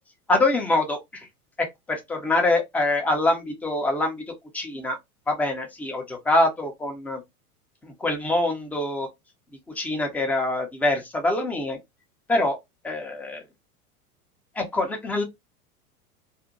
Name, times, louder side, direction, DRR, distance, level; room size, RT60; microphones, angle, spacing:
voice 1, 0.3-1.3 1.6-4.2 4.5-5.0 5.3-7.2 7.8-9.1 9.7-11.8 12.3-12.6 12.8-13.4 14.6-15.2, left 2 dB, 5° left, 0.4 m, -24 dB
2.5 x 2.1 x 2.8 m
figure-of-eight pair, 90°, 45 cm